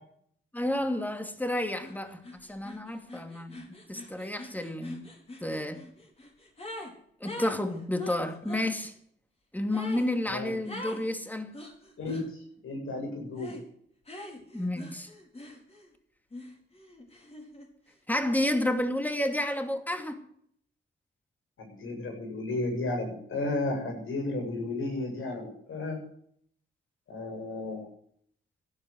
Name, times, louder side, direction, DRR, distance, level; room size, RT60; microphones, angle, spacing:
voice 1, 0.5-5.1 5.4-5.8 7.2-8.9 9.5-11.5 14.5-15.1 18.1-20.3, left 1 dB, 10° left, 2.5 m, -31 dB
sound 1, 1.8-2.0 2.2-6.9 7.2-8.7 9.7-10.1 10.7-11.1 11.5-12.3 13.4-13.7 14.1-15.9 16.3-17.7, left 1 dB, 30° left, 4.7 m, -44 dB
voice 2, 12.0-12.4 12.6-13.5 21.6-26.0 27.1-27.9, left 2 dB, 80° left, 7.9 m, -33 dB
16.0 x 11.5 x 6.4 m
cardioid pair, 90°, 21 cm